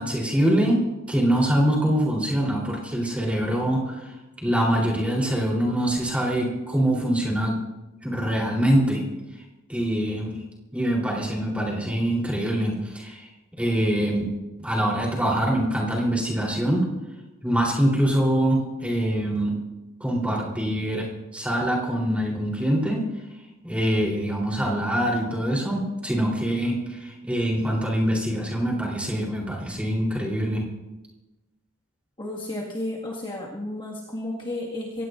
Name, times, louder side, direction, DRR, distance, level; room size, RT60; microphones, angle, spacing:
voice 1, 0.0-7.6 8.0-9.0 9.3-9.4 9.7-10.4 10.7-13.3 13.6-14.2 14.6-16.9 17.4-19.6 20.0-23.0 23.6-30.7, right 1 dB, 5° right, -3 dB, 3.6 m, -24 dB
voice 2, 32.2-35.0, left 1 dB, 25° left, -4 dB, 1.9 m, -32 dB
23.5 x 17.5 x 2.6 m, 1.1 s
head